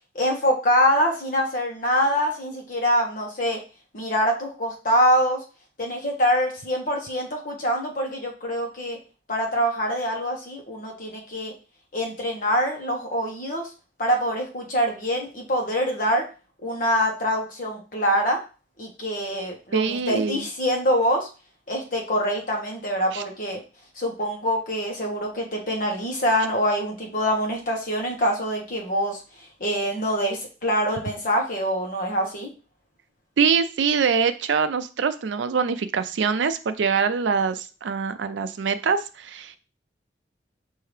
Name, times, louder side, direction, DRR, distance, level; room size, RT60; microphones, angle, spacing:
voice 1, 0.1-3.6 3.9-5.4 5.8-9.0 9.3-11.5 11.9-13.7 14.0-16.2 16.6-18.4 18.8-21.3 21.7-23.6 24.0-29.2 29.6-32.5, equal, 45° left, 0 dB, 1.1 m, -24 dB
voice 2, 19.7-20.5 23.1-23.2 33.4-39.6, right 6 dB, 85° right, 11 dB, 0.4 m, -24 dB
5.7 x 2.7 x 3.2 m, 0.34 s
head